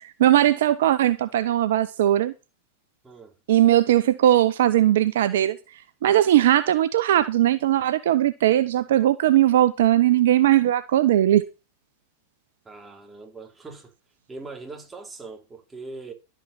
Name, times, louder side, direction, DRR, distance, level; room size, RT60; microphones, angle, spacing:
voice 1, 0.0-2.3 3.5-5.6 6.0-11.4, right 12 dB, 60° right, 0.7 m, -19 dB
voice 2, 3.0-3.4 12.6-13.9 14.3-16.1, right 3 dB, 10° right, 4.0 m, -41 dB
12.0 x 8.9 x 5.6 m
figure-of-eight pair, 90°, 0 cm